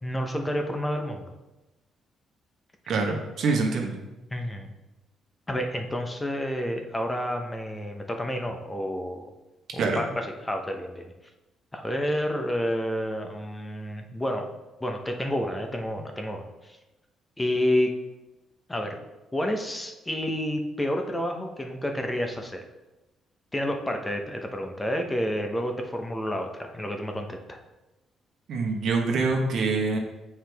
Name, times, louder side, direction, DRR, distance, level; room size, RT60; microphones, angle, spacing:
voice 1, 0.0-1.3 4.3-4.7 5.5-9.3 9.7-11.1 11.7-14.5 14.8-16.8 17.4-18.0 18.7-19.0 19.3-22.6 23.5-27.6, equal, 15° left, 4 dB, 0.8 m, -29 dB
voice 2, 2.9-4.0 9.8-10.1 28.5-30.0, right 3 dB, 70° right, 1 dB, 1.2 m, -25 dB
7.5 x 4.8 x 3.5 m, 1.0 s
cardioid pair, 90°, 0 cm